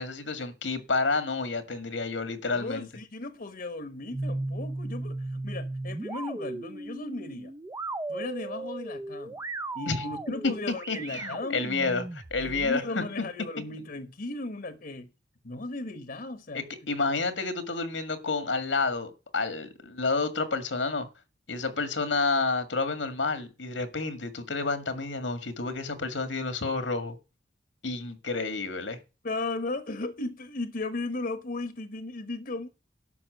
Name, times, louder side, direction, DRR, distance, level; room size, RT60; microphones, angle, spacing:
voice 1, 0.0-2.9 9.9-10.0 10.4-10.5 10.9-13.0 16.5-21.1 21.5-27.2 27.8-29.0, left 3 dB, 90° left, 1.9 m, -30 dB
voice 2, 2.5-7.5 8.1-9.4 9.7-11.6 12.4-15.1 15.4-16.7 29.2-32.7, left 2 dB, 50° left, 1.1 m, -36 dB
sound 1, 4.1-12.7, right 2 dB, 15° right, 0.5 m, -36 dB
12.0 x 5.8 x 7.8 m
head